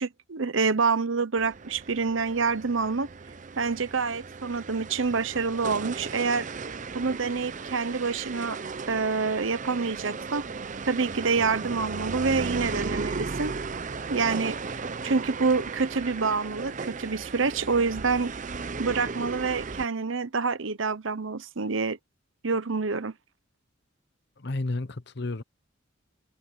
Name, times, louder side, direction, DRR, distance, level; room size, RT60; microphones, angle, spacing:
voice 1, 0.0-3.1 3.6-6.5 6.9-8.6 8.9-10.5 10.9-13.5 14.1-18.3 18.8-22.0 22.4-23.1, right 4 dB, 80° right, 1.0 m, -27 dB
sound 1, 1.4-19.9, right 4 dB, 40° right, 0.6 m, -36 dB
voice 2, 24.4-25.4, left 2 dB, 60° left, 1.0 m, -31 dB
head